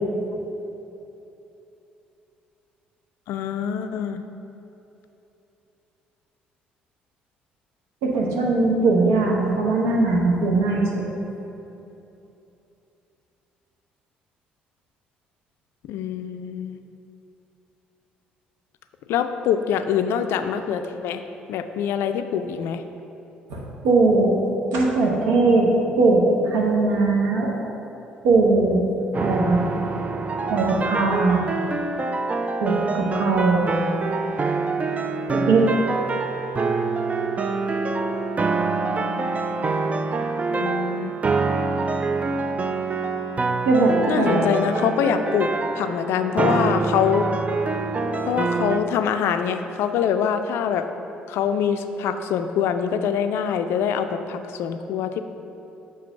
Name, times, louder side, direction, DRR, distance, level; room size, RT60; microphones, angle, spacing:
voice 1, 3.3-4.2 15.9-16.8 19.1-21.2 21.5-22.8 40.5-41.2 44.0-47.2 48.2-50.9 51.3-55.2, left 8 dB, 60° left, 8 dB, 0.3 m, -24 dB
voice 2, 8.0-11.0 23.5-24.3 24.7-25.7 26.0-27.5 28.2-28.8 29.2-29.6 30.5-31.4 32.6-33.6 35.3-35.7 43.7-44.4, right 3 dB, 70° right, -2 dB, 1.0 m, -20 dB
sound 1, 29.1-48.8, right 3 dB, 30° right, 0.4 m, -25 dB
6.8 x 3.2 x 5.5 m, 2.9 s
figure-of-eight pair, 50°, 5 cm